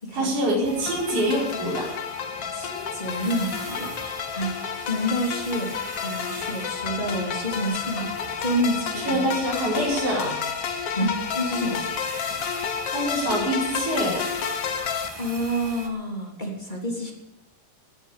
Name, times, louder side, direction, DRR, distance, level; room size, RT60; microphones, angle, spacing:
voice 1, 0.1-2.0 9.0-10.4 12.9-14.3, right 1 dB, 35° right, -3 dB, 6.0 m, -25 dB
sound 1, 0.6-15.9, right 1 dB, 55° right, 0.3 m, -39 dB
sound 2, 0.9-15.1, left 7 dB, 80° left, 1.3 m, -31 dB
voice 2, 2.5-3.9 4.3-4.6 4.9-8.1 8.4-9.2 10.9-11.8 15.2-17.1, equal, 10° left, -1 dB, 3.0 m, -28 dB
18.5 x 10.0 x 6.7 m, 1.0 s
omnidirectional pair, 4.6 m